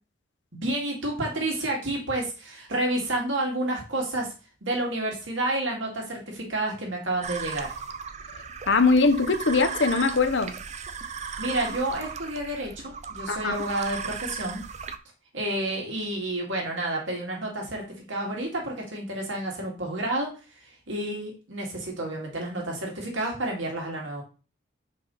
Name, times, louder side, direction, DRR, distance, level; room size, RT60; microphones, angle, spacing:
voice 1, 0.5-4.3 4.6-7.8 11.4-14.6 15.3-20.4 20.6-24.2, right 1 dB, 75° right, 2.3 m, -30 dB
sound 1, 7.2-15.0, right 6 dB, 35° right, 0.5 m, -36 dB
voice 2, 8.7-10.6 13.3-13.5, left 4 dB, 65° left, 0.8 m, -21 dB
5.6 x 5.0 x 4.1 m
head